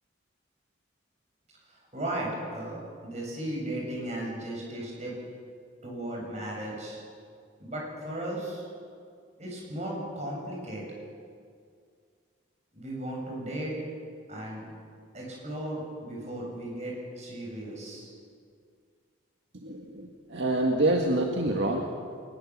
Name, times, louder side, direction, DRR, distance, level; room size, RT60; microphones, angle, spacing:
voice 1, 1.9-2.8 3.0-5.1 5.8-7.0 7.6-8.6 9.4-10.8 12.7-13.8 14.3-14.7 15.1-18.1, right 1 dB, 35° right, -2 dB, 7.5 m, -35 dB
voice 2, 19.6-21.8, right 1 dB, 65° right, 1 dB, 1.8 m, -26 dB
22.0 x 21.0 x 7.4 m, 2.2 s
head